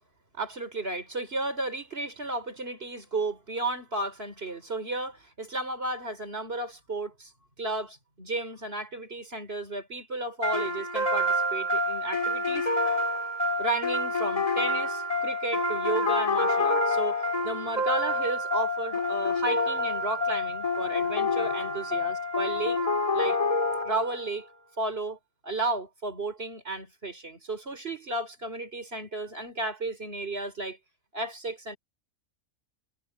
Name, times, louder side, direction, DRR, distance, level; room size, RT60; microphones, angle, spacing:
voice 1, 0.3-7.3 7.6-12.7 13.6-22.8 23.1-23.4 23.8-24.5 24.8-25.2 25.4-30.8 31.1-31.8, right 2 dB, 45° right, 4.3 m, -33 dB
sound 1, 10.4-24.3, left 2 dB, 25° left, 2.2 m, -27 dB
omnidirectional pair, 1.5 m